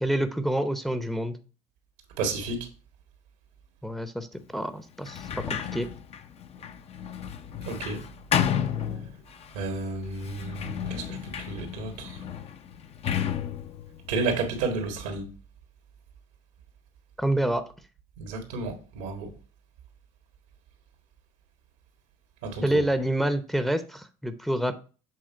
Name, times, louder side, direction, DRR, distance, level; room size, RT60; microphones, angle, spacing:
voice 1, 0.0-1.4 3.8-4.3 4.5-5.9 17.2-17.7 22.6-24.8, right 1 dB, ahead, 0.7 m, -27 dB
voice 2, 2.2-2.6 7.7-8.0 9.5-11.2 11.5-12.2 14.1-15.3 18.2-19.3 22.4-22.6, right 3 dB, 85° right, 1.7 m, -31 dB
Sliding door, 5.0-9.5 10.2-15.0, left 9 dB, 40° left, 0.7 m, -32 dB
7.8 x 3.5 x 4.5 m
supercardioid pair, 80°, 15 cm